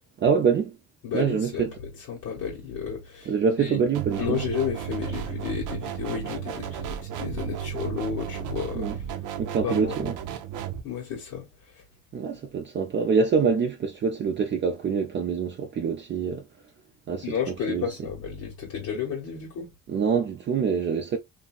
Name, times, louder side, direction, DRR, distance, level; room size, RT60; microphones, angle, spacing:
voice 1, 0.2-0.8 1.1-1.7 3.3-4.4 8.7-9.0 9.4-10.1 12.1-16.4 17.1-17.3 17.7-17.9 19.9-21.2, right 6 dB, 40° right, 0.4 m, -25 dB
voice 2, 1.0-3.8 4.2-9.0 9.6-10.1 10.8-11.8 17.2-19.7, left 7 dB, 85° left, 1.2 m, -32 dB
sound 1, 3.9-10.8, right 9 dB, 90° right, 0.5 m, -33 dB
2.8 x 2.6 x 2.3 m
cardioid pair, 90°, 30 cm